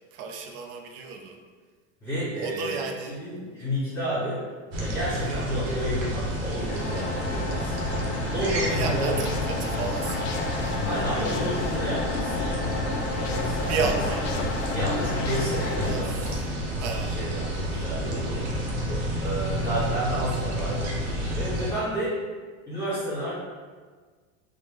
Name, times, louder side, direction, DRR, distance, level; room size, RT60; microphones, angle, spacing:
voice 1, 0.1-1.4 2.3-3.2 5.3-5.6 8.7-10.3 13.7-14.3 15.8-16.4 16.8-17.2 19.5-19.7, right 5 dB, 45° right, 3 dB, 0.4 m, -32 dB
voice 2, 2.0-4.4 4.8-9.2 10.8-12.6 13.3-13.8 14.7-16.3 17.1-18.5 19.2-22.2 22.7-23.3, equal, 10° left, -12 dB, 1.2 m, -31 dB
sound 1, 4.7-21.7, equal, 65° right, 0.9 m, -30 dB
sound 2, 6.7-15.9, left 3 dB, 25° left, 0.4 m, -33 dB
sound 3, 8.4-16.4, left 5 dB, 85° left, 0.5 m, -36 dB
3.1 x 2.1 x 3.4 m, 1.5 s
supercardioid pair, 130°, 36 cm